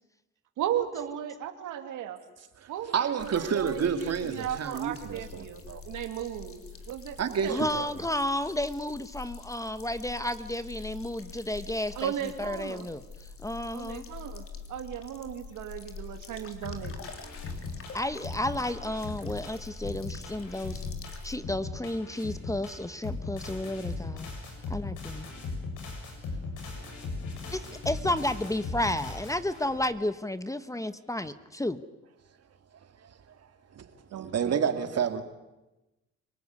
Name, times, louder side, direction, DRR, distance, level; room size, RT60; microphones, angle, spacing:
voice 1, 0.6-2.2 2.7-6.6 6.9-7.9 12.0-12.9 13.7-14.4 14.7-16.9 34.1-34.9, right 10 dB, 85° right, 2.5 m, -36 dB
voice 2, 2.6-5.8 7.2-7.8 33.0-33.4 33.7-33.9 34.2-35.2, right 7 dB, 55° right, 2.5 m, -30 dB
sound 1, 3.2-21.4, left 5 dB, 45° left, 3.5 m, -45 dB
voice 3, 7.5-12.1 12.4-13.0 13.4-14.0 17.9-20.8 21.2-24.3 24.7-25.3 27.5-31.8, left 1 dB, 10° left, 1.2 m, -32 dB
sound 2, 16.6-29.8, left 3 dB, 80° left, 7.3 m, -38 dB
26.5 x 19.0 x 9.7 m
cardioid pair, 90°, 30 cm